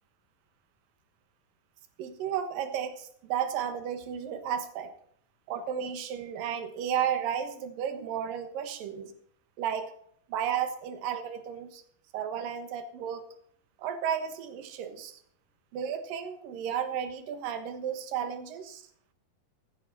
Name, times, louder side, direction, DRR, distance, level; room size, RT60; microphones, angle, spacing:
voice 1, 2.0-4.9 5.5-9.1 9.6-9.9 10.3-11.8 12.1-13.2 13.8-15.2 15.7-18.8, right 8 dB, 80° right, 9 dB, 3.0 m, -33 dB
14.5 x 11.5 x 4.1 m, 0.65 s
omnidirectional pair, 3.9 m